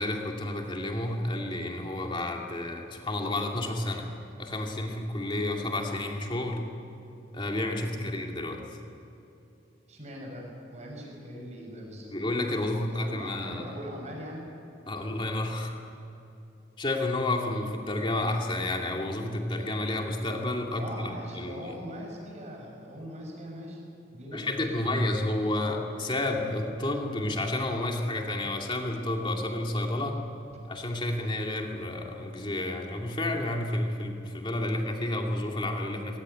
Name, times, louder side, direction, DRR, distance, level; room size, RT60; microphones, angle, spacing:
voice 1, 0.0-4.1 4.4-6.7 7.3-8.6 12.1-13.7 14.9-15.8 16.8-21.7 24.3-30.2 30.7-36.2, left 1 dB, 25° left, 1 dB, 2.5 m, -30 dB
voice 2, 9.9-12.1 12.8-14.4 20.7-23.8 24.1-24.4 24.7-24.9 30.5-30.6, equal, 40° right, 0 dB, 6.4 m, -41 dB
21.5 x 18.5 x 9.8 m, 2.8 s
head